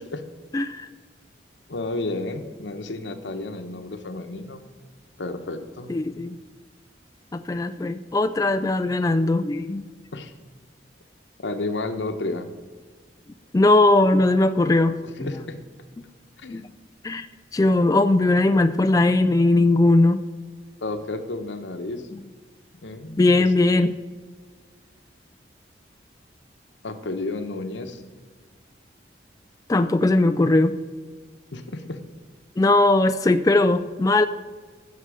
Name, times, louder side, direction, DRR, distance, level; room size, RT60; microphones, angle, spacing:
voice 1, 0.5-0.9 5.9-6.4 7.3-9.9 13.5-15.3 16.5-16.6 17.0-17.3 17.5-20.2 23.2-24.0 29.7-30.8 32.6-34.3, left 2 dB, 20° left, 9 dB, 0.3 m, -19 dB
voice 2, 1.7-4.6 5.2-5.9 10.1-10.3 11.4-12.5 15.0-15.6 16.4-16.6 20.8-22.1 22.8-23.8 26.8-28.0 31.5-32.0, left 2 dB, 85° left, 8 dB, 1.0 m, -32 dB
15.5 x 6.7 x 4.9 m, 1.5 s
head